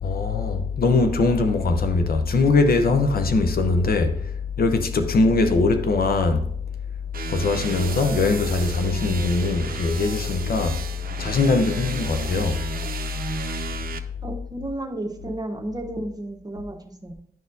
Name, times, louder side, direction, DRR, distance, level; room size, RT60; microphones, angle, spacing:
voice 1, 0.0-6.5 7.3-10.8 11.2-12.6, left 3 dB, 70° left, 0.7 m, -21 dB
sound 1, 7.1-14.0, right 6 dB, 65° right, 0.6 m, -34 dB
voice 2, 14.2-17.1, right 1 dB, 25° right, 1.1 m, -32 dB
10.5 x 4.1 x 2.6 m
cardioid pair, 60°, 16 cm